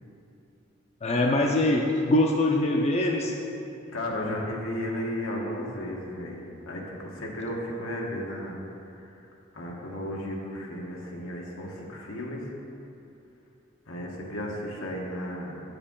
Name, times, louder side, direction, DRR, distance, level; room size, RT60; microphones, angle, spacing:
voice 1, 1.0-3.3, left 1 dB, 30° left, 1 dB, 0.5 m, -23 dB
voice 2, 3.9-8.6 8.9-9.2 9.5-12.5 13.9-15.6, left 1 dB, 90° left, -1 dB, 1.2 m, -34 dB
8.3 x 6.7 x 3.7 m, 2.7 s
head